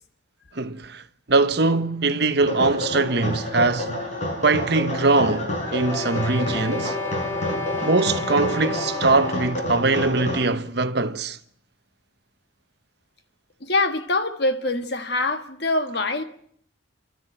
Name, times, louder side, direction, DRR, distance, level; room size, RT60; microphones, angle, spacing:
voice 1, 0.5-1.0 1.3-4.0 4.4-7.0 7.8-11.4, right 3 dB, 55° right, 1.0 m, -22 dB
sound 1, 2.4-10.5, left 1 dB, 35° left, 6.5 m, -29 dB
sound 2, 5.6-9.8, left 3 dB, 15° left, 1.9 m, -32 dB
voice 2, 13.6-16.2, left 2 dB, 55° left, 1.8 m, -24 dB
29.5 x 13.0 x 9.0 m
head